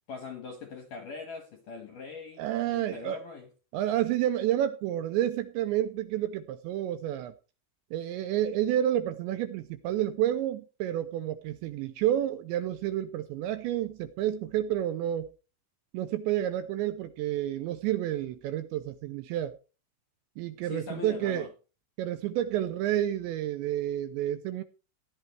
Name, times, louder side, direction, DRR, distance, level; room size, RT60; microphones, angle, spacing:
voice 1, 0.1-3.5 20.6-21.5, left 5 dB, 70° left, 2.1 m, -41 dB
voice 2, 2.4-3.2 3.7-7.3 7.9-15.3 15.9-19.5 20.4-21.4 22.0-24.6, right 12 dB, 80° right, 2.7 m, -30 dB
16.0 x 11.0 x 3.3 m
omnidirectional pair, 5.7 m